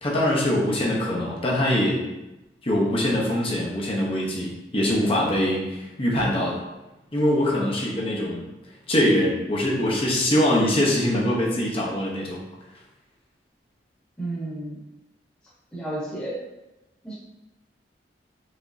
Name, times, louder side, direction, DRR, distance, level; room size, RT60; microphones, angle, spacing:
voice 1, 0.0-2.0 2.6-6.6 7.1-8.4 8.9-12.4, left 1 dB, 35° left, -3 dB, 0.9 m, -23 dB
voice 2, 14.2-14.8 15.7-16.4 17.0-17.1, right 1 dB, 10° left, -9 dB, 1.3 m, -31 dB
5.0 x 3.4 x 2.7 m, 1.0 s
head